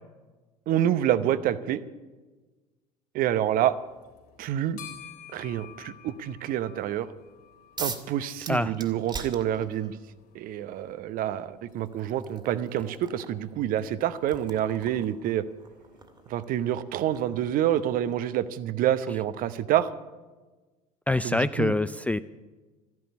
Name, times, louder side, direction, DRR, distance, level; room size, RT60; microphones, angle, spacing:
voice 1, 0.7-1.8 3.1-3.8 4.4-4.8 5.3-7.1 7.8-10.0 10.3-15.4 16.3-19.9 21.2-21.7, right 11 dB, 45° right, 14 dB, 0.9 m, -27 dB
sound 1, 3.8-16.3, left 9 dB, 55° left, 3.4 m, -53 dB
sound 2, 7.8-8.1 8.4-10.0 11.1-11.2 11.7-18.4, right 4 dB, 25° right, 2.1 m, -42 dB
voice 2, 21.1-22.2, left 2 dB, 5° left, 13 dB, 0.4 m, -25 dB
14.0 x 11.0 x 8.4 m, 1.3 s
figure-of-eight pair, 65°, 20 cm